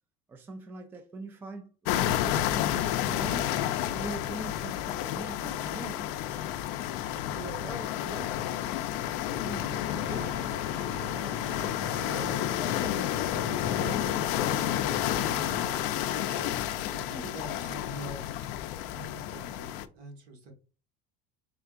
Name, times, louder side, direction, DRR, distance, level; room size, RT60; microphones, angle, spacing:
voice 1, 0.3-3.5 3.9-6.1 7.1-8.7 9.3-10.4 10.8-11.5 12.0-14.3 14.9-15.8, right 2 dB, 10° right, 0.3 m, -43 dB
sound 1, 1.9-19.9, left 12 dB, 65° left, 0.4 m, -30 dB
sound 2, 9.6-17.0, right 2 dB, 40° right, 1.0 m, -44 dB
voice 2, 16.9-18.3 18.9-20.5, right 2 dB, 55° right, 1.4 m, -44 dB
4.5 x 3.6 x 2.4 m
cardioid pair, 165°, 17 cm